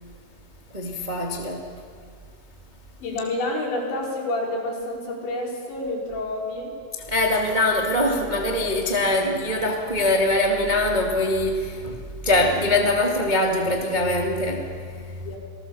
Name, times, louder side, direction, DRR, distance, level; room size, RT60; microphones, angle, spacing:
voice 1, 0.7-1.7 7.1-15.2, left 1 dB, 35° right, 0.6 m, -23 dB
voice 2, 3.0-6.7 15.3-15.4, left 2 dB, 85° left, 7.4 m, -28 dB
28.0 x 18.5 x 7.1 m
omnidirectional pair, 5.0 m